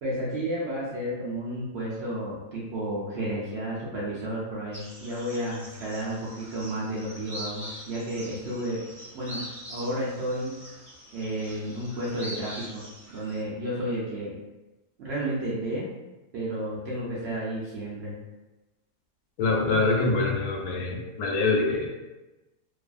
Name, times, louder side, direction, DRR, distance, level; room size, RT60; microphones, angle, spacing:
voice 1, 0.0-8.8 9.1-9.4 9.7-10.7 11.1-12.8 13.1-14.4 15.0-15.9 16.3-18.2, right 1 dB, 85° right, -7 dB, 0.5 m, -32 dB
sound 1, 4.7-13.4, equal, 5° right, 0.7 m, -43 dB
voice 2, 19.4-21.9, left 3 dB, 75° left, 0 dB, 1.0 m, -25 dB
2.6 x 2.4 x 2.3 m, 1.1 s
omnidirectional pair, 1.8 m